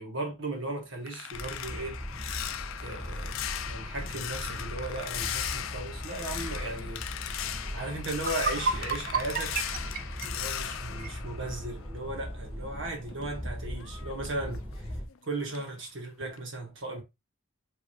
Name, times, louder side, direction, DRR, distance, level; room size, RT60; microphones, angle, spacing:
voice 1, 0.0-2.0 2.8-3.4 3.7-7.1 7.7-9.6 10.2-14.9 15.3-17.0, right 2 dB, 65° right, 1.6 m, -36 dB
sound 1, 0.5-12.2 12.5-15.2 15.5-15.8 16.2-16.4, left 10 dB, 85° left, 0.5 m, -38 dB
sound 2, 1.3-15.1, equal, 10° right, 1.2 m, -39 dB
sound 3, 7.7-7.8 8.1-11.2, right 5 dB, 45° right, 0.5 m, -32 dB
4.7 x 3.1 x 3.0 m
head